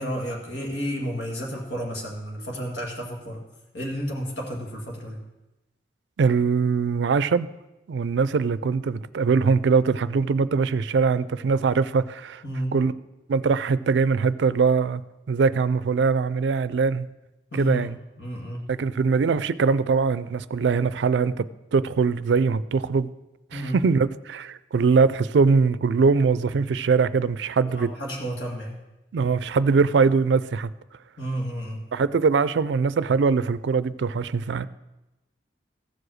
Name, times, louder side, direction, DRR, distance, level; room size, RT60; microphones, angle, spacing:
voice 1, 0.0-3.4 3.7-5.2 12.4-12.8 17.5-17.9 18.2-18.7 23.5-23.8 27.8-28.8 31.2-31.8, equal, 80° left, -1 dB, 2.0 m, -31 dB
voice 2, 6.2-7.5 7.9-12.4 12.7-12.9 13.3-15.0 15.3-17.1 17.5-17.9 18.7-23.1 23.5-27.9 29.1-30.7 31.9-34.7, right 5 dB, 85° right, 16 dB, 0.4 m, -22 dB
14.5 x 4.9 x 6.3 m, 1.0 s
head